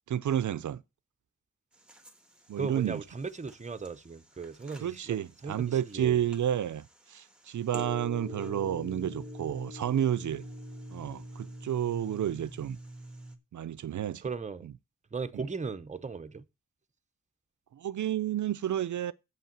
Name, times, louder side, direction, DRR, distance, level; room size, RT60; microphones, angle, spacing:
voice 1, 0.1-0.8 2.5-3.0 4.8-10.4 10.9-12.8 13.5-14.2 14.6-14.7 15.3-15.4 17.7-19.1, right 10 dB, 75° right, 0.5 m, -31 dB
sound 1, 1.7-13.4, equal, 5° right, 1.6 m, -45 dB
voice 2, 2.6-6.2 9.0-9.1 14.2-14.7 15.1-16.4, right 4 dB, 25° right, 0.8 m, -37 dB
7.9 x 5.6 x 7.4 m
wide cardioid pair, 90°, 30 cm